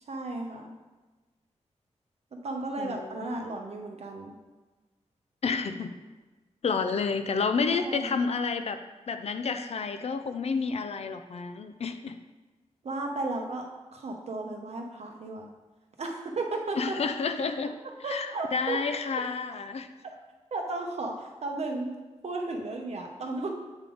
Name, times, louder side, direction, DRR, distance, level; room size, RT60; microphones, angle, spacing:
voice 1, 0.1-0.7 2.4-4.3 7.6-8.1 12.8-13.7 13.9-15.5 16.0-17.0 18.0-18.8 20.5-21.9 22.2-23.5, right 2 dB, 60° right, 2 dB, 0.8 m, -34 dB
voice 2, 2.8-3.4 5.4-5.9 6.6-8.8 9.1-12.2 16.8-17.7 18.1-19.9, left 5 dB, 60° left, 8 dB, 0.4 m, -30 dB
8.1 x 3.4 x 3.8 m, 1.2 s
wide cardioid pair, 170°, 12 cm